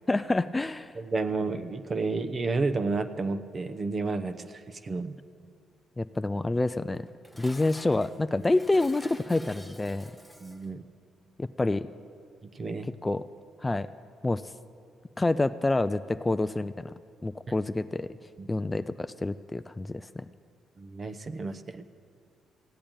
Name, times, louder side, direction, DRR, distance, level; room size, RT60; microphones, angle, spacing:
voice 1, 0.1-0.9 6.0-7.1 7.4-10.1 11.4-11.9 13.0-13.2 13.6-13.9 14.2-14.4 15.2-16.9 17.2-18.1 18.5-20.3, left 2 dB, 15° left, 12 dB, 0.3 m, -27 dB
voice 2, 1.0-5.2 10.4-10.8 12.5-12.9 18.4-18.5 20.8-21.8, right 3 dB, 35° right, 10 dB, 0.8 m, -31 dB
Dishes pots and pans, 6.9-10.8, equal, ahead, 0.9 m, -49 dB
15.5 x 8.6 x 8.9 m, 2.3 s
cardioid pair, 90°, 0 cm